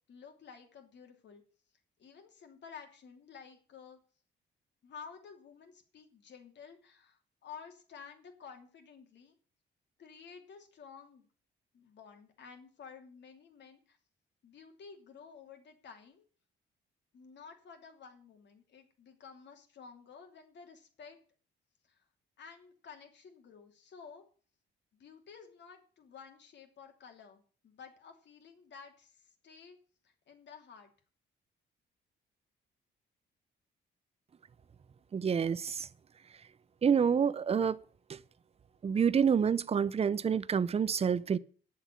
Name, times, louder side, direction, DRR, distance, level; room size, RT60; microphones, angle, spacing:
voice 1, 0.1-1.4 2.0-4.0 4.8-9.3 10.0-11.3 11.7-14.0 14.4-16.2 17.1-21.2 21.8-22.0 22.4-24.2 24.9-29.8 30.0-30.9, left 6 dB, 60° left, 2.9 m, -52 dB
voice 2, 35.1-35.9 36.8-37.8 38.1-38.2 38.8-41.4, right 7 dB, 30° right, 0.6 m, -28 dB
9.6 x 7.2 x 8.3 m
cardioid pair, 90°, 20 cm